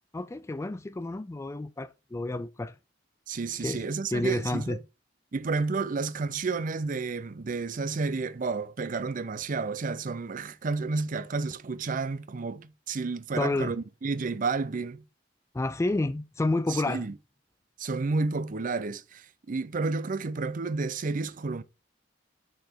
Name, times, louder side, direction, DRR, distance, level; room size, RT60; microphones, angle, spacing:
voice 1, 0.1-2.8 3.6-3.8 4.1-4.8 13.4-13.7 15.5-17.0, left 2 dB, 15° left, 0.3 m, -30 dB
voice 2, 3.3-4.8 5.3-15.0 16.7-17.1 17.8-21.6, right 4 dB, 45° right, 0.5 m, -31 dB
6.6 x 4.2 x 4.4 m
head